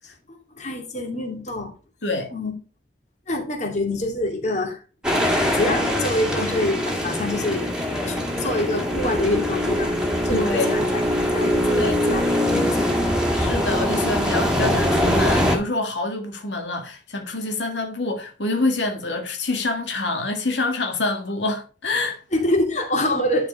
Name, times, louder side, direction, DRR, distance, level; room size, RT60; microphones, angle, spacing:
voice 1, 0.3-1.7 2.3-2.5 3.3-4.8 5.5-7.7 8.1-9.9 10.2-11.0 11.3-12.2 12.5-12.9 22.3-23.5, left 1 dB, 40° left, 2.4 m, -25 dB
sound 1, 5.0-15.6, equal, 5° right, 2.0 m, -22 dB
voice 2, 10.3-10.7 11.6-12.0 13.3-22.2, left 2 dB, 90° left, 1.7 m, -26 dB
11.0 x 4.7 x 5.4 m
head